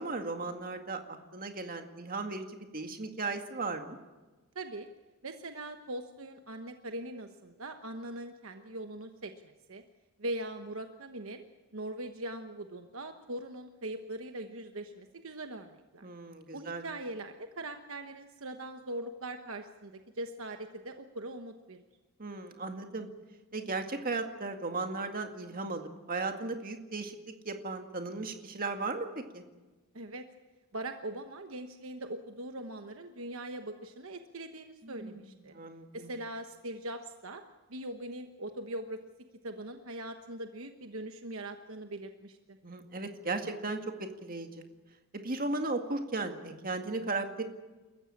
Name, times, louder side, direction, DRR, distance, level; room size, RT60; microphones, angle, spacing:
voice 1, 0.0-4.0 16.0-16.8 22.2-23.1 23.5-29.1 29.3-29.4 34.8-36.1 42.6-44.6 45.2-47.4, right 3 dB, 40° right, 5 dB, 2.1 m, -36 dB
voice 2, 4.5-4.9 5.2-9.8 10.2-11.4 11.7-16.0 16.5-21.8 29.9-30.2 30.7-35.5 35.9-37.4 37.7-39.0 39.4-42.4, right 1 dB, 65° right, 6 dB, 1.2 m, -41 dB
28.5 x 14.5 x 8.7 m, 1.2 s
head